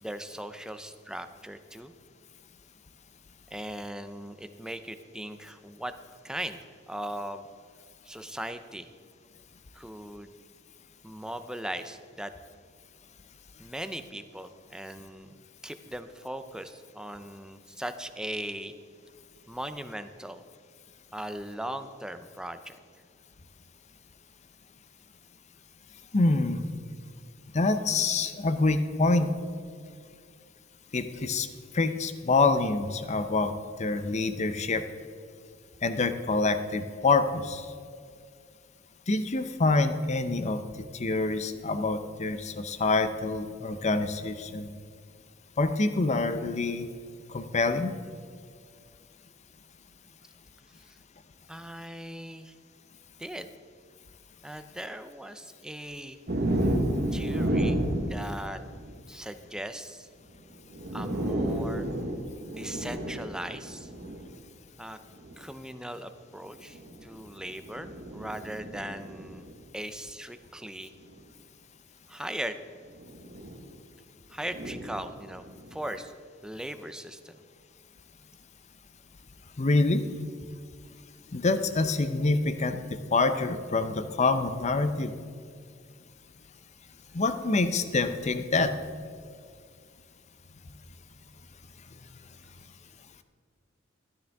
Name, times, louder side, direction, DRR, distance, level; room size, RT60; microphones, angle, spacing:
voice 1, 0.0-1.9 3.5-5.9 6.2-6.6 6.9-7.5 8.0-8.9 9.7-10.3 11.0-12.3 13.6-18.7 19.5-20.4 21.1-22.8 50.8-51.0 51.5-52.5 53.2-53.5 54.4-56.2 57.1-58.6 59.1-60.1 60.9-61.9 62.5-63.9 64.8-65.0 65.4-69.5 69.7-70.9 72.1-72.6 74.3-75.4 75.7-76.1 76.4-77.4, right 1 dB, 5° right, 9 dB, 0.5 m, -39 dB
voice 2, 26.1-26.7 27.5-29.3 30.9-31.5 31.7-33.5 33.8-34.8 35.8-37.6 39.1-40.6 41.0-44.7 45.6-46.9 47.3-47.9 79.6-80.0 81.3-85.1 87.1-88.7, left 3 dB, 35° left, 9 dB, 0.6 m, -26 dB
sound 1, 56.3-59.0 60.3-60.4 60.7-64.3 65.2-65.4 66.6-69.5 71.0-71.2 72.9-73.6 74.4-75.9, right 1 dB, 55° right, 1.2 m, -32 dB
12.5 x 12.5 x 3.5 m, 2.2 s
head